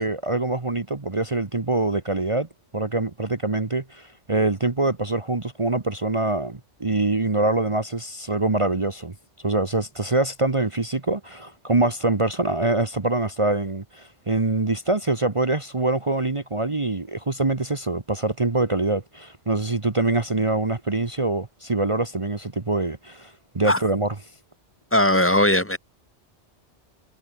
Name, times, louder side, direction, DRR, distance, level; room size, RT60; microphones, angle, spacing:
voice 1, 0.0-2.5 2.7-9.1 9.4-24.1, right 2 dB, 30° right, 1.2 m, -24 dB
voice 2, 24.9-25.8, left 1 dB, 10° left, 2.8 m, -19 dB
omnidirectional pair, 1.2 m